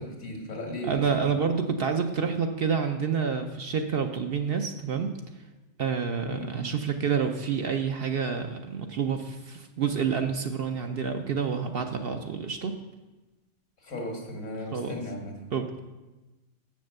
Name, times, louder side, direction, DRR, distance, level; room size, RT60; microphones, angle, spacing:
voice 1, 0.0-1.0 6.3-6.5 13.8-15.4, left 1 dB, 90° left, 1 dB, 2.2 m, -36 dB
voice 2, 0.8-5.1 5.8-12.8 14.7-14.9 15.5-15.8, right 6 dB, 55° right, 6 dB, 0.7 m, -28 dB
7.7 x 6.6 x 6.4 m, 1.1 s
omnidirectional pair, 1.4 m